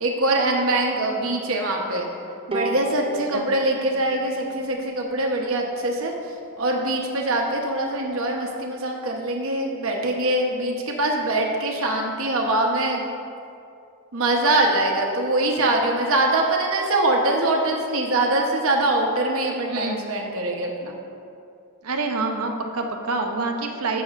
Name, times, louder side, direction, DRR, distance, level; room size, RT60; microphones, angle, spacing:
voice 1, 0.0-2.1 2.5-6.1 6.6-13.1 14.1-21.0, right 2 dB, 65° right, 0 dB, 1.0 m, -23 dB
Bowed string instrument, 2.5-5.8, right 1 dB, 25° right, 0.7 m, -34 dB
voice 2, 19.7-20.0 21.8-24.0, right 3 dB, 90° right, 4 dB, 0.8 m, -27 dB
11.5 x 6.9 x 2.5 m, 2.5 s
head